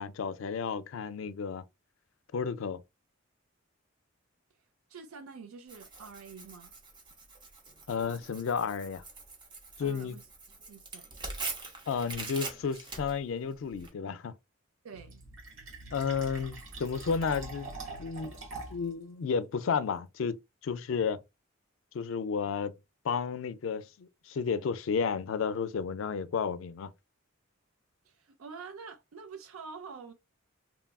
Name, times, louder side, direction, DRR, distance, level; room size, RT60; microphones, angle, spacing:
voice 1, 0.0-1.6 2.3-2.8 7.9-9.0 9.8-10.2 11.9-14.3 15.9-17.7 18.0-18.4 18.7-21.2 21.9-22.7 23.0-26.9, left 6 dB, 65° left, 0.4 m, -32 dB
voice 2, 4.9-6.7 9.8-10.3 10.7-11.1 14.8-15.2 28.0-30.1, right 5 dB, 85° right, 0.5 m, -47 dB
Tearing, 5.7-13.9, right 3 dB, 20° right, 0.6 m, -43 dB
Fill (with liquid), 14.9-18.9, right 2 dB, 60° right, 1.2 m, -44 dB
3.0 x 2.3 x 2.2 m
head